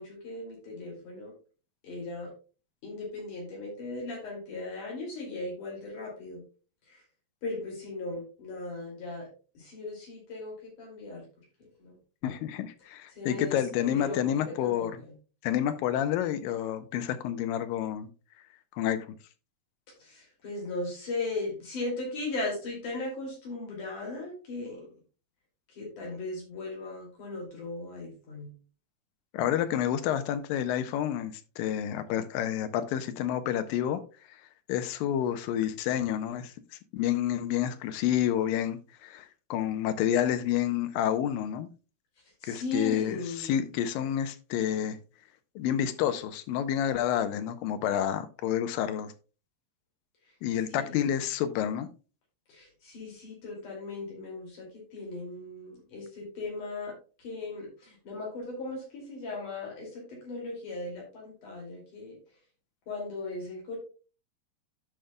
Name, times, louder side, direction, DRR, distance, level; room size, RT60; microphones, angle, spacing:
voice 1, 0.0-1.3 1.8-2.3 2.8-6.4 6.9-7.0 7.4-9.3 9.5-11.2 11.8-12.3 13.1-15.1 20.0-24.9 25.7-28.5 42.4-43.5 50.3-50.4 50.7-51.1 52.5-62.2 62.9-63.8, left 2 dB, 60° left, 3.9 m, -38 dB
voice 2, 12.2-14.9 15.4-18.1 18.8-19.1 29.3-34.0 34.3-34.4 34.7-36.5 36.9-41.7 42.4-45.0 45.6-49.1 50.4-51.9, left 10 dB, 80° left, 2.3 m, -29 dB
15.5 x 5.1 x 2.2 m
omnidirectional pair, 4.3 m